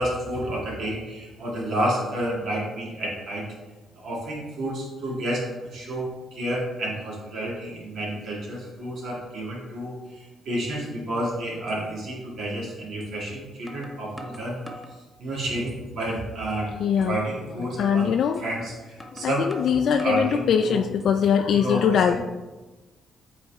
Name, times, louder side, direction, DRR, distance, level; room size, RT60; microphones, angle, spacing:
voice 1, 0.0-3.5 3.9-14.8 15.2-18.1 18.4-20.8 21.5-22.2, right 1 dB, 65° right, -3 dB, 2.2 m, -30 dB
sound 1, 11.7-11.8 13.0-13.1 13.7-15.0 15.5-16.0 16.4-16.5 17.0-17.2 18.3-18.5 19.0-20.3 20.8-21.4, equal, 5° left, 0.9 m, -43 dB
voice 2, 16.8-17.2 17.6-18.4 19.1-22.2, left 7 dB, 70° left, 5 dB, 0.3 m, -22 dB
7.7 x 4.2 x 3.5 m, 1.2 s
cardioid pair, 90°, 0 cm